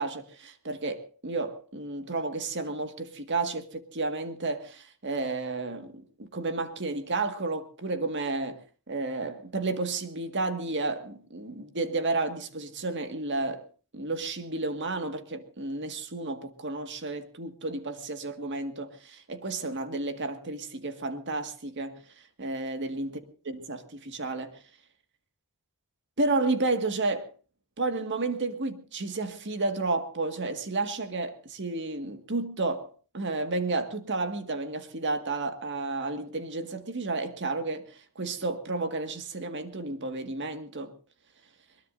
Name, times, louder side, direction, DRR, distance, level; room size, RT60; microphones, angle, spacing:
voice 1, 0.0-13.7 13.9-23.1 23.4-24.6 26.2-27.3 27.8-40.9, right 3 dB, 55° right, 1.8 m, -32 dB
22.5 x 21.0 x 2.6 m
head